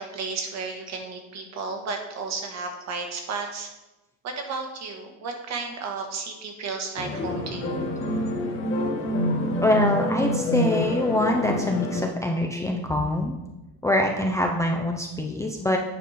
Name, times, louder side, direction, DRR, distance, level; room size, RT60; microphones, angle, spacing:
voice 1, 0.0-3.7 4.2-7.8, right 4 dB, 50° right, 3 dB, 1.3 m, -33 dB
sound 1, 7.0-12.0, left 1 dB, 35° left, 1.3 m, -26 dB
voice 2, 9.6-13.4 13.8-15.8, left 1 dB, 10° left, 1 dB, 0.4 m, -24 dB
9.2 x 5.3 x 4.2 m, 1.0 s
cardioid pair, 155°, 36 cm